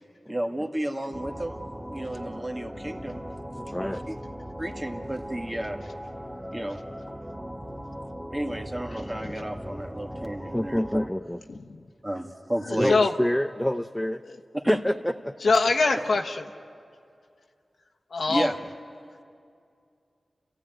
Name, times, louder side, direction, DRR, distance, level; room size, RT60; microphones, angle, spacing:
voice 1, 0.3-3.2 3.8-4.2 4.6-5.8 6.5-6.8 8.3-10.8 12.0-13.0 14.6-14.8 15.9-16.0 18.3-18.6, right 1 dB, 25° right, 3 dB, 2.0 m, -32 dB
sound 1, 1.1-11.1, equal, 5° right, 1.2 m, -39 dB
voice 2, 3.5-4.0 10.5-11.4 12.8-14.2 14.7-14.9 15.2-15.3, left 1 dB, 10° left, 7 dB, 0.6 m, -27 dB
voice 3, 15.4-16.4 18.1-18.5, left 3 dB, 80° left, 2 dB, 1.3 m, -22 dB
29.5 x 15.0 x 9.2 m, 2.4 s
cardioid pair, 40°, 0 cm